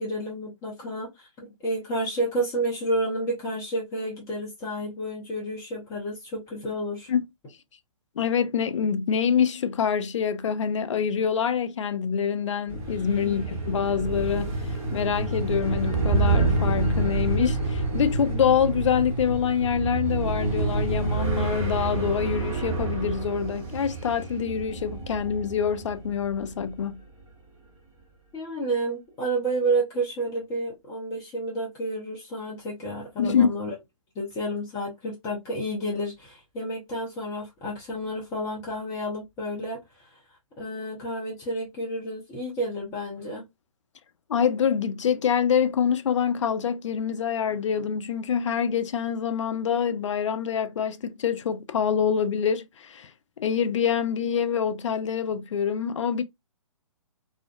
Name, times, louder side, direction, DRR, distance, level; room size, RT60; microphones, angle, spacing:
voice 1, 0.0-7.1 13.2-13.4 28.3-33.7 34.2-39.8 40.6-43.4, right 1 dB, 15° left, 0.7 m, -30 dB
voice 2, 8.2-14.6 14.9-27.0 33.2-33.5 44.3-53.1 53.4-56.2, left 7 dB, 60° left, 0.4 m, -25 dB
sound 1, 12.7-26.7, right 3 dB, 10° right, 1.1 m, -28 dB
2.4 x 2.2 x 2.5 m
figure-of-eight pair, 135°, 18 cm